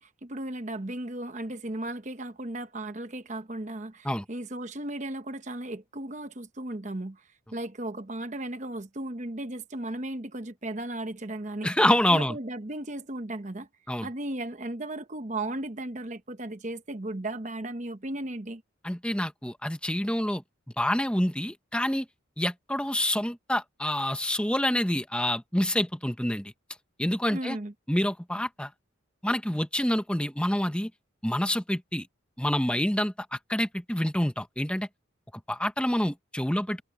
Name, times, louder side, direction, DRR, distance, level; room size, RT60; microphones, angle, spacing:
voice 1, 0.0-7.2 7.5-11.7 12.1-13.7 14.0-18.6 27.3-27.7, right 1 dB, 35° right, 1.0 m, -35 dB
voice 2, 11.6-12.4 13.9-14.1 18.8-20.4 20.8-22.0 22.4-26.5 27.0-27.6 27.9-28.7 29.2-30.9 31.2-32.1 32.4-34.9 35.5-36.8, left 1 dB, 5° left, 1.0 m, -27 dB
head